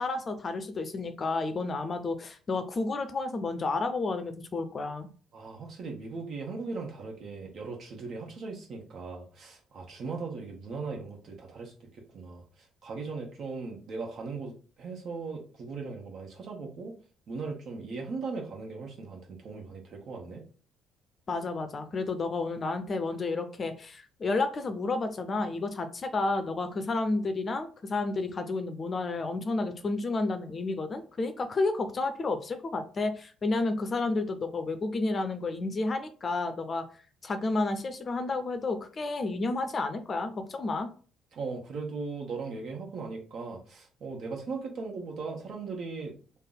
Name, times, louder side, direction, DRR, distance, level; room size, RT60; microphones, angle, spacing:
voice 1, 0.0-5.1 21.3-36.8 37.2-40.9, left 3 dB, 40° left, 8 dB, 0.5 m, -31 dB
voice 2, 5.3-11.7 12.1-12.4 12.8-17.0 17.3-20.4 41.3-46.4, right 4 dB, 55° right, 0 dB, 0.9 m, -38 dB
3.3 x 2.1 x 3.9 m, 0.39 s
figure-of-eight pair, 45°, 0 cm